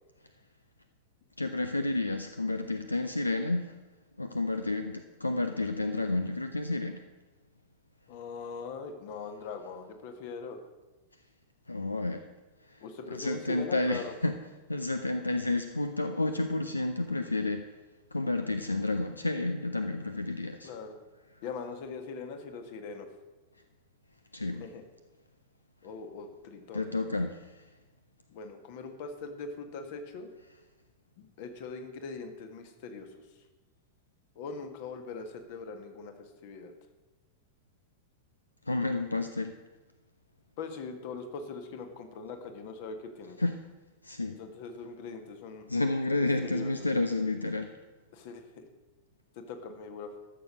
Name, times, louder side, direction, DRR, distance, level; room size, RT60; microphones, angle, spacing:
voice 1, 1.4-3.7 4.2-7.0 11.7-12.2 12.7-14.3 14.7-17.7 18.1-20.7 24.3-24.7 26.7-27.7 38.7-39.5 43.4-43.6 44.0-44.4 45.7-47.7, left 2 dB, 80° left, 8 dB, 0.5 m, -30 dB
voice 2, 8.1-10.6 12.8-14.1 20.6-21.0 21.4-23.1 24.6-24.8 25.8-26.9 28.3-30.3 31.2-33.2 34.3-36.1 36.4-36.7 40.6-43.4 44.4-45.7 46.4-46.7 48.1-48.6 49.3-50.1, left 4 dB, 50° left, 6 dB, 1.5 m, -41 dB
13.5 x 6.8 x 6.3 m, 1.2 s
figure-of-eight pair, 90°, 0 cm